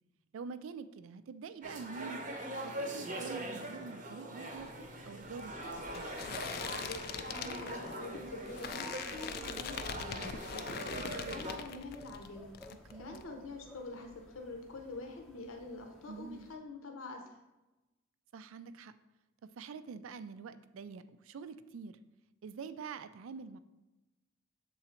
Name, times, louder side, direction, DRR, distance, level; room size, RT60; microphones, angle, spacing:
voice 1, 0.3-2.2 2.5-4.7 5.1-5.5 5.9-6.1 12.9-13.2 16.1-16.5 18.3-18.9 19.6-22.0 22.4-23.6, right 5 dB, 80° right, 12 dB, 0.4 m, -46 dB
sound 1, 1.6-11.6, right 1 dB, 35° right, 0.7 m, -42 dB
sound 2, 4.5-12.3 12.5-13.2, left 7 dB, 45° left, 0.3 m, -43 dB
sound 3, 5.2-16.6, left 1 dB, 5° left, 0.6 m, -59 dB
voice 2, 6.8-12.5 12.9-17.4, left 2 dB, 85° left, 3 dB, 0.8 m, -46 dB
7.0 x 3.8 x 4.3 m, 1.0 s
head